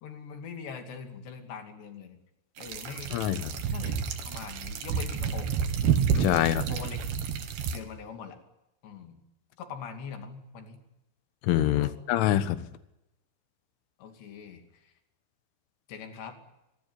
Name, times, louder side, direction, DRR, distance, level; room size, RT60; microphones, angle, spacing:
voice 1, 0.0-2.2 2.6-3.1 3.7-4.0 4.2-5.5 6.4-7.0 7.7-8.4 8.8-9.2 9.6-10.8 11.8-12.0 14.0-14.9 15.9-16.4, left 6 dB, 65° left, 6 dB, 4.7 m, -42 dB
sound 1, 2.6-7.8, right 7 dB, 60° right, 3.8 m, -29 dB
voice 2, 3.1-3.5 6.1-6.6 11.4-12.7, left 13 dB, 80° left, 13 dB, 3.7 m, -25 dB
25.5 x 20.5 x 9.5 m, 0.93 s
omnidirectional pair, 5.6 m